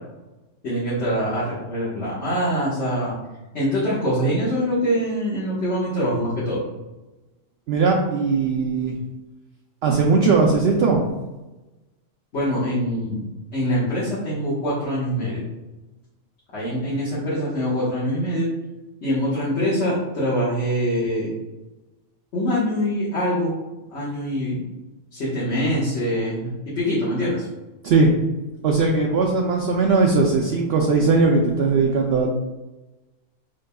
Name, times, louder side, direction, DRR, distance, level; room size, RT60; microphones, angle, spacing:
voice 1, 0.6-3.1 3.5-6.6 12.3-15.4 16.5-18.5 19.0-21.3 22.3-23.5 23.9-24.6 25.1-27.5, equal, 60° left, -9 dB, 1.5 m, -24 dB
voice 2, 7.7-8.9 9.8-11.0 27.8-28.1 28.6-32.3, right 4 dB, 60° right, 0 dB, 0.7 m, -19 dB
5.3 x 3.8 x 2.2 m, 1.1 s
omnidirectional pair, 1.3 m